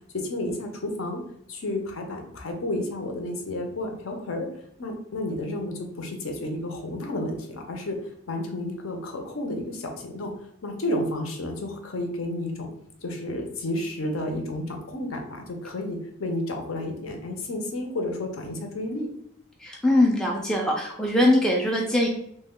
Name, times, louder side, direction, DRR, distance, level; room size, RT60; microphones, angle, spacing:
voice 1, 0.1-1.2 1.5-4.5 4.8-10.3 10.6-12.7 13.0-19.1, left 1 dB, 75° left, 3 dB, 0.7 m, -31 dB
voice 2, 19.6-22.1, left 1 dB, 5° left, -2 dB, 0.3 m, -22 dB
3.0 x 2.1 x 3.6 m, 0.72 s
head